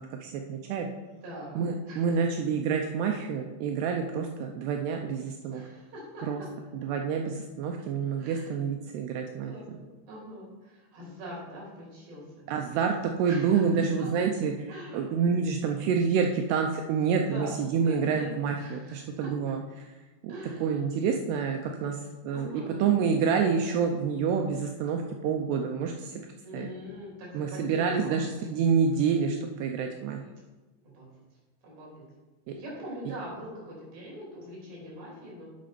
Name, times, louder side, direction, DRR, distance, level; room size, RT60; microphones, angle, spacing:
voice 1, 0.2-0.9 1.6-5.6 6.2-6.4 6.8-9.5 12.5-19.8 20.2-20.3 20.6-26.3 26.5-26.7 27.3-30.2, right 6 dB, 80° right, 3 dB, 2.4 m, -28 dB
voice 2, 1.2-2.1 4.1-4.3 5.5-6.2 7.8-7.9 8.2-8.5 9.5-12.7 13.3-14.1 14.7-15.2 17.1-17.5 17.8-18.3 18.6-19.3 20.3-20.7 22.3-22.8 26.4-28.4 30.8-31.1 31.6-32.0 32.6-35.5, equal, 55° right, -4 dB, 4.6 m, -43 dB
9.0 x 6.6 x 5.2 m, 1.2 s
omnidirectional pair, 5.3 m